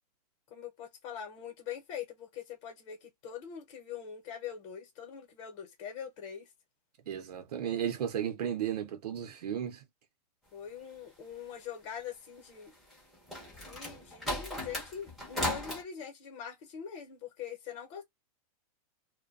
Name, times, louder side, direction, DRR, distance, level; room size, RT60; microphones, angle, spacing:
voice 1, 0.5-6.5 10.5-12.7 13.5-18.0, left 8 dB, 30° left, 0.9 m, -43 dB
voice 2, 7.1-9.8, right 9 dB, 80° right, 0.7 m, -34 dB
sound 1, 12.9-15.8, left 1 dB, ahead, 0.7 m, -36 dB
2.4 x 2.2 x 2.3 m
supercardioid pair, 170°, 20 cm